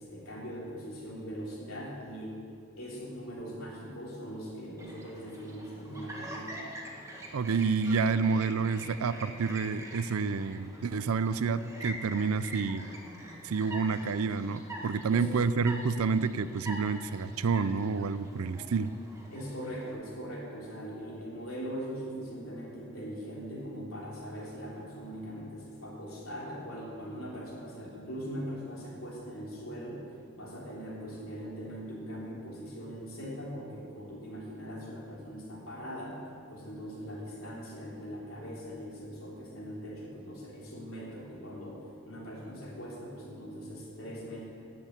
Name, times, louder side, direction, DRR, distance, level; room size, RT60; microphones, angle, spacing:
voice 1, 0.0-2.4 2.8-6.6 15.1-15.3 19.3-30.0 30.4-44.5, equal, 75° left, -5 dB, 3.4 m, -41 dB
Chirp tweet, 4.8-19.9, right 1 dB, 15° right, 1.4 m, -45 dB
voice 2, 7.3-12.9 13.4-18.9, right 5 dB, 85° right, 14 dB, 0.5 m, -29 dB
10.5 x 7.8 x 8.2 m, 2.3 s
head